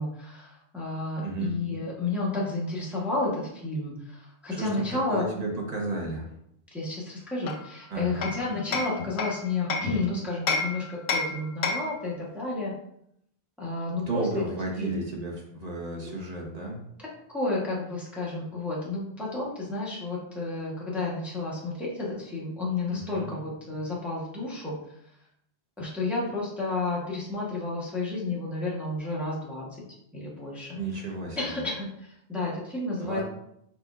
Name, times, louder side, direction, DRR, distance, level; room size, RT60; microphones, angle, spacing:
voice 1, 0.0-5.2 6.7-12.7 13.6-14.4 14.8-15.0 17.0-24.8 25.8-29.8 30.1-30.8 31.4-33.2, left 2 dB, ahead, -6 dB, 1.0 m, -31 dB
voice 2, 1.2-1.5 4.5-6.3 7.9-8.3 14.0-16.8 22.9-23.3 30.8-31.4 33.0-33.2, right 2 dB, 40° right, -1 dB, 1.1 m, -33 dB
Hammer, 7.5-10.0 10.5-12.0, left 4 dB, 65° left, 0.7 m, -30 dB
4.2 x 4.0 x 2.4 m, 0.75 s
omnidirectional pair, 1.1 m